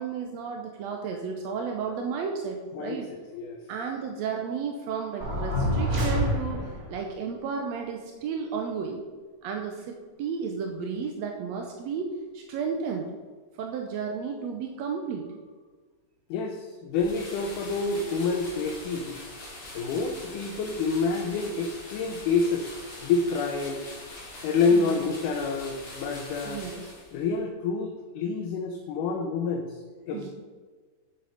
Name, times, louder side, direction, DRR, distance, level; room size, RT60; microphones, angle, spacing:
voice 1, 0.0-3.1 3.7-9.0 9.4-13.1 13.6-15.4 24.7-25.0 26.4-26.8 30.1-30.3, right 6 dB, 80° right, 2 dB, 1.6 m, -33 dB
voice 2, 3.3-3.6 16.3-19.2 19.7-22.7 23.0-23.9 24.4-26.6 27.1-30.3, left 4 dB, 75° left, 3 dB, 2.2 m, -28 dB
sound 1, 5.2-6.9, equal, 30° right, 1.4 m, -26 dB
sound 2, 16.9-27.3, left 2 dB, 40° left, 3.3 m, -43 dB
8.4 x 7.5 x 5.1 m, 1.4 s
omnidirectional pair, 3.9 m